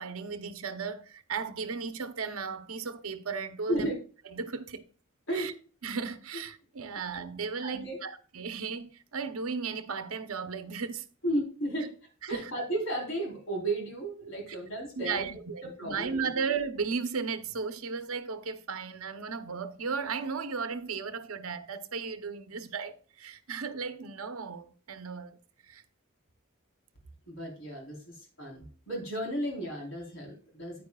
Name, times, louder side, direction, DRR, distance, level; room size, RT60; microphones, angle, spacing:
voice 1, 0.0-3.9 4.3-4.8 5.3-5.5 5.8-11.1 12.2-12.5 14.5-14.6 15.0-25.4 25.6-25.8, right 5 dB, 90° right, 0.8 m, -35 dB
voice 2, 7.6-8.0 11.2-11.9 12.3-15.3 15.6-16.3 27.3-28.0 28.4-30.8, right 1 dB, 65° left, 3.9 m, -34 dB
9.6 x 9.2 x 2.3 m
head